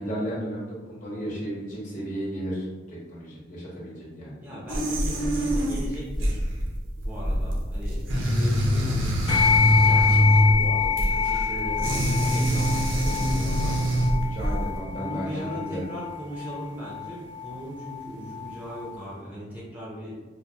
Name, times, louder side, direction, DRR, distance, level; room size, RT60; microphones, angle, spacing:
voice 1, 0.0-4.3 14.2-15.8, right 1 dB, 40° left, -6 dB, 0.9 m, -34 dB
voice 2, 4.4-6.4 7.0-9.0 9.5-13.8 15.0-20.2, equal, 10° right, -7 dB, 0.4 m, -37 dB
sound 1, 4.7-14.8, equal, 80° right, 0.6 m, -24 dB
sound 2, 9.3-19.0, left 6 dB, 70° left, 0.6 m, -27 dB
3.8 x 2.0 x 2.3 m, 1.3 s
head